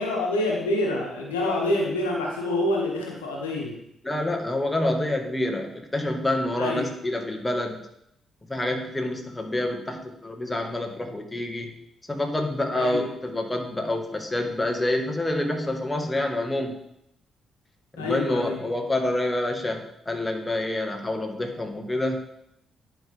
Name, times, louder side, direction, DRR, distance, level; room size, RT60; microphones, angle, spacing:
voice 1, 0.0-3.8 6.6-6.9 12.7-13.1 18.0-18.6, left 1 dB, 90° left, -1 dB, 1.2 m, -27 dB
voice 2, 4.0-7.8 8.5-11.7 12.1-16.8 18.0-22.2, left 1 dB, 20° left, 3 dB, 1.6 m, -27 dB
10.5 x 5.1 x 3.5 m, 0.76 s
hypercardioid pair, 40°, 0 cm